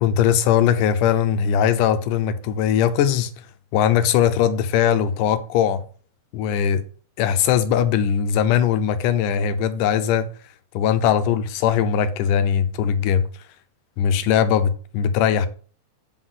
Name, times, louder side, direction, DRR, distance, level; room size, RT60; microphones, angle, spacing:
voice 1, 0.0-3.3 3.7-5.8 6.3-6.8 7.2-10.3 10.7-13.3 14.0-15.5, left 9 dB, 80° left, 2.3 m, -20 dB
8.0 x 3.9 x 6.2 m
omnidirectional pair, 3.7 m